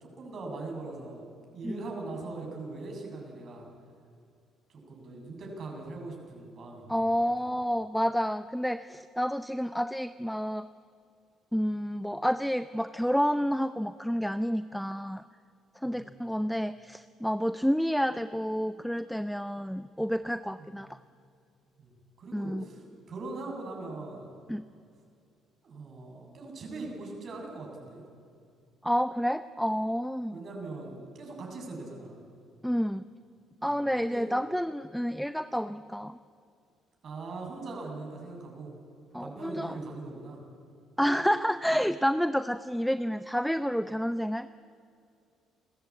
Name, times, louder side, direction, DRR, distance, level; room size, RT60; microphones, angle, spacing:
voice 1, 0.0-3.7 4.7-7.2 15.8-16.1 20.6-20.8 21.8-24.3 25.6-28.0 30.3-32.2 33.7-34.3 37.0-38.8 39.2-40.4, right 3 dB, 55° right, 1 dB, 7.1 m, -41 dB
voice 2, 6.9-10.7 11.5-15.2 15.8-21.0 22.3-22.6 24.5-24.6 28.8-30.4 32.6-33.0 33.6-36.2 39.1-39.8 41.0-44.6, equal, ahead, 13 dB, 0.7 m, -29 dB
29.5 x 14.5 x 8.6 m, 2.4 s
hypercardioid pair, 60°, 0 cm